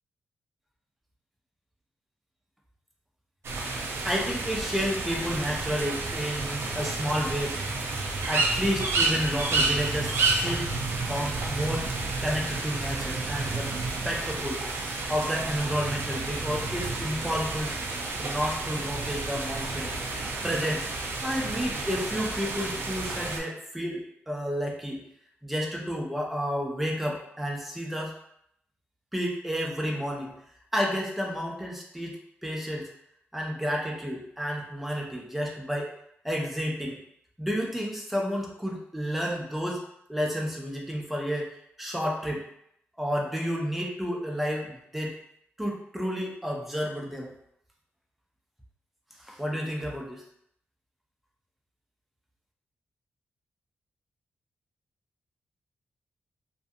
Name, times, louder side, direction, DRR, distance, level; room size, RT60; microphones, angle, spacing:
sound 1, 3.4-23.4, right 3 dB, 65° right, 0.4 m, -30 dB
voice 1, 4.0-7.6 8.3-10.7 11.0-11.9 12.2-13.7 14.0-14.6 15.1-17.8 18.2-19.9 20.4-20.9 21.2-25.0 25.4-28.1 29.1-30.3 30.7-32.2 32.4-32.9 33.3-35.9 36.2-37.0 37.4-39.8 40.1-41.5 41.8-42.4 43.0-45.2 45.6-47.3 49.2-50.2, equal, 5° right, -2 dB, 0.5 m, -31 dB
2.5 x 2.5 x 2.5 m, 0.74 s
wide cardioid pair, 155°, 4 cm